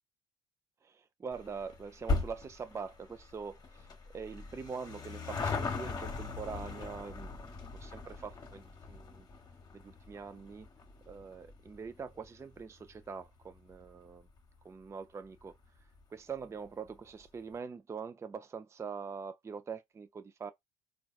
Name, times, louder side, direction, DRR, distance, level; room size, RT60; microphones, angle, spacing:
voice 1, 0.8-7.3 7.8-9.3 9.7-10.7 11.1-14.3 14.6-15.6 16.1-20.5, right 5 dB, 20° right, 0.4 m, -44 dB
sound 1, 1.3-14.1 14.4-14.5 15.3-15.4 15.6-15.7 16.0-16.1, left 3 dB, 35° left, 1.0 m, -40 dB
3.9 x 2.4 x 2.4 m
hypercardioid pair, 55°, 13 cm